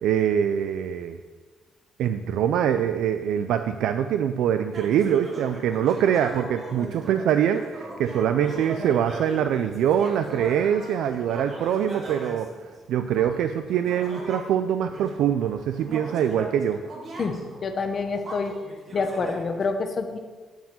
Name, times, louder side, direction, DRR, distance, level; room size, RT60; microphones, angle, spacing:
voice 1, 0.0-1.2 2.0-12.5 12.9-16.8, right 9 dB, 90° right, 8 dB, 0.4 m, -24 dB
sound 1, 4.7-14.5 14.9-19.6, right 2 dB, 35° right, 1.8 m, -40 dB
voice 2, 17.2-18.6 18.9-20.2, left 4 dB, 35° left, 6 dB, 0.9 m, -27 dB
9.2 x 4.8 x 7.6 m, 1.4 s
cardioid pair, 155°, 0 cm